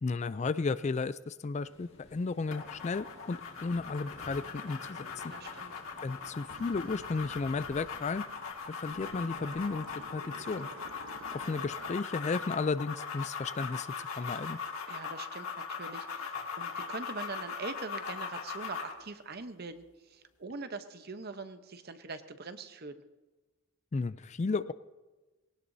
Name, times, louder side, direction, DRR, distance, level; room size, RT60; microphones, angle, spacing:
voice 1, 0.0-5.0 6.0-8.2 8.7-10.7 11.3-14.6 23.9-24.7, left 4 dB, 35° left, 15 dB, 0.3 m, -34 dB
Waves surf, 1.6-10.0, left 1 dB, 60° left, 2.0 m, -56 dB
sound 1, 2.5-19.0, left 5 dB, 90° left, 2.0 m, -40 dB
voice 2, 5.3-5.7 14.9-23.0, right 3 dB, 50° right, 10 dB, 0.9 m, -43 dB
sound 2, 6.5-8.5 8.8-11.9, right 3 dB, 90° right, 1.0 m, -50 dB
20.0 x 18.0 x 2.7 m, 1.2 s
head